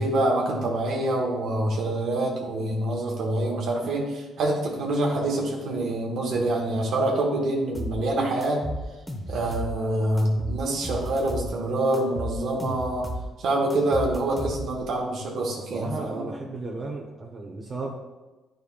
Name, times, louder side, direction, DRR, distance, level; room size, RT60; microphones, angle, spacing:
voice 1, 0.0-8.6 9.3-13.1 13.4-16.2, right 1 dB, 75° right, -1 dB, 1.3 m, -26 dB
sound 1, 7.7-8.0 8.4-9.8 10.2-11.5 11.9-13.3 13.7-14.9, equal, 10° left, 1.2 m, -33 dB
voice 2, 15.6-17.9, right 3 dB, 40° right, -4 dB, 1.1 m, -34 dB
9.4 x 5.3 x 2.4 m, 1.2 s
cardioid pair, 90°, 0 cm